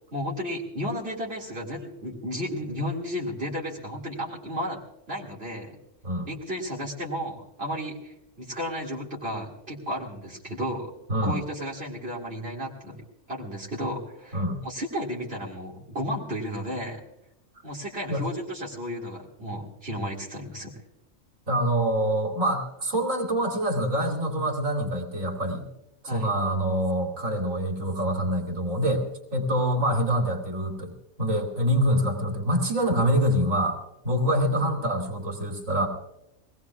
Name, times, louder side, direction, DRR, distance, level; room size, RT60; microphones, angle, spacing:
voice 1, 0.1-4.8 5.1-5.8 6.2-10.9 11.2-17.0 17.6-20.7 26.1-26.3, equal, 50° right, -2 dB, 2.5 m, -33 dB
voice 2, 21.5-25.7 26.0-29.1 29.3-30.9 31.2-33.8 34.0-35.9, equal, 80° right, 1 dB, 2.9 m, -25 dB
24.5 x 19.0 x 2.4 m, 0.83 s
omnidirectional pair, 1.3 m